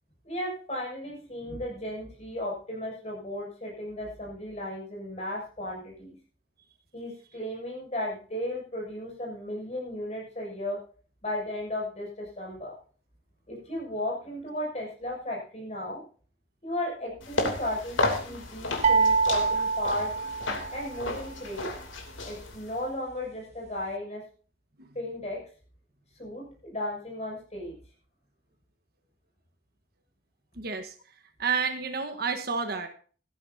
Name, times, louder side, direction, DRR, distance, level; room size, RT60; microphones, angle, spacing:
voice 1, 0.2-6.1 6.9-10.8 11.2-12.7 13.5-16.0 16.6-20.1 20.7-21.7 22.2-24.2 24.9-25.4 26.2-27.8, left 1 dB, 35° left, -1 dB, 6.9 m, -35 dB
sound 1, 17.2-22.8, left 2 dB, 85° left, 3.0 m, -33 dB
sound 2, 18.8-21.0, right 4 dB, 35° right, 0.7 m, -25 dB
voice 2, 30.6-30.9 31.4-32.9, right 5 dB, 50° right, 7 dB, 1.4 m, -30 dB
17.0 x 13.5 x 2.8 m, 0.41 s
head